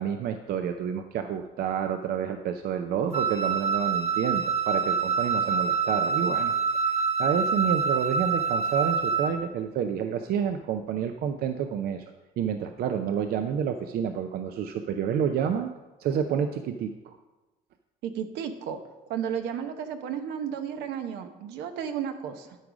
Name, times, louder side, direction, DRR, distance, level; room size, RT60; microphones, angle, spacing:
voice 1, 0.0-6.5 6.8-12.0 12.4-15.7 16.0-17.2, right 8 dB, 65° right, 7 dB, 0.6 m, -29 dB
Wind instrument woodwind instrument, 3.1-9.4, right 5 dB, 40° right, 0.9 m, -26 dB
voice 2, 18.0-18.8 19.1-22.6, right 8 dB, 85° right, 7 dB, 0.9 m, -33 dB
12.0 x 4.9 x 5.0 m, 1.1 s
cardioid pair, 110°, 17 cm